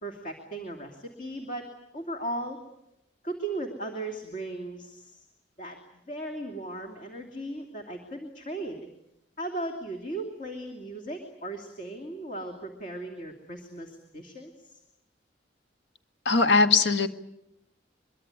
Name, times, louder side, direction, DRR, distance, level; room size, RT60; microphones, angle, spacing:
voice 1, 0.0-1.6 1.9-2.6 3.2-5.2 5.6-8.8 9.4-14.8, right 1 dB, 45° left, 4 dB, 2.9 m, -37 dB
voice 2, 16.3-17.1, left 4 dB, 85° left, 8 dB, 1.8 m, -20 dB
24.0 x 23.5 x 9.7 m, 0.83 s
head